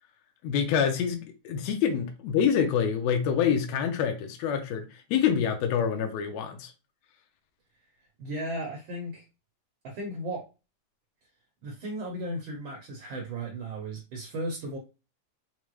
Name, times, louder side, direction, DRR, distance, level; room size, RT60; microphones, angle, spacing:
voice 1, 0.4-6.7, left 8 dB, 75° left, 1.9 m, -26 dB
voice 2, 8.2-9.2 9.8-10.5 11.6-14.8, right 1 dB, 65° right, 1.2 m, -35 dB
5.2 x 2.1 x 3.1 m
omnidirectional pair, 3.3 m